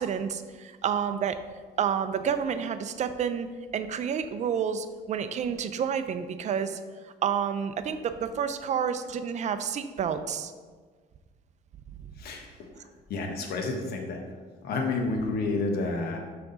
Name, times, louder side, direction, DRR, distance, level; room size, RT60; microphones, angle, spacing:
voice 1, 0.0-1.4 1.8-3.5 3.7-6.8 7.2-10.5, right 7 dB, 45° right, 10 dB, 0.5 m, -29 dB
voice 2, 12.2-12.7 13.1-14.2 14.6-16.2, left 3 dB, 65° left, 2 dB, 1.2 m, -30 dB
6.0 x 5.8 x 4.0 m, 1.5 s
cardioid pair, 110°, 17 cm